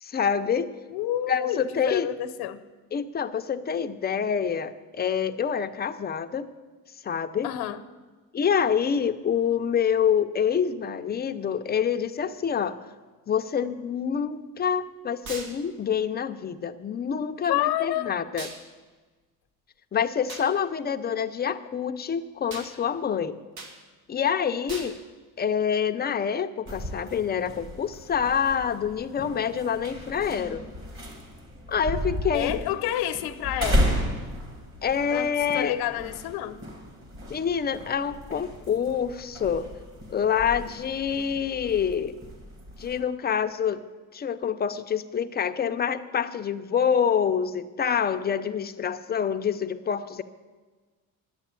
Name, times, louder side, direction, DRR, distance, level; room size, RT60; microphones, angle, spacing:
voice 1, 0.0-0.7 1.3-2.1 2.9-6.5 7.0-7.5 8.3-12.8 13.3-18.5 19.9-23.4 24.1-25.0 25.4-30.6 31.7-32.6 34.8-35.7 37.3-39.7 40.1-42.2 42.8-43.8 44.1-50.2, left 7 dB, 25° left, 9 dB, 0.5 m, -26 dB
voice 2, 0.9-2.6 7.4-7.8 17.5-18.1 32.3-34.0 35.1-35.3 35.5-36.6, left 12 dB, 90° left, 12 dB, 0.8 m, -29 dB
sound 1, 15.2-15.5 18.4-18.6 20.3-20.5 22.5-22.7 23.6-23.7 24.7-24.9, right 3 dB, 65° right, 2.0 m, -38 dB
sound 2, 26.7-43.0, equal, 35° right, 2.4 m, -34 dB
11.0 x 8.2 x 8.3 m, 1.3 s
cardioid pair, 140°, 37 cm